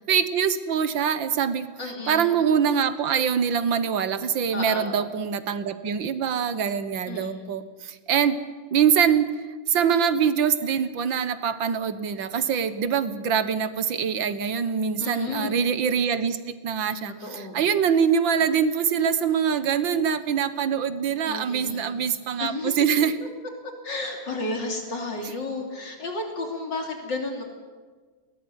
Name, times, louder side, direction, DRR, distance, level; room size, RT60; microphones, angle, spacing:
voice 1, 0.0-1.7 2.1-8.4 8.7-9.3 9.7-23.1, right 7 dB, 85° right, 12 dB, 2.0 m, -24 dB
voice 2, 1.8-2.4 4.5-5.0 7.1-7.6 15.0-15.6 17.1-17.6 21.2-22.0 22.4-22.8 23.2-23.3 23.6-27.4, left 2 dB, 70° left, 3 dB, 3.8 m, -33 dB
21.5 x 18.5 x 9.8 m, 1.4 s
omnidirectional pair, 2.0 m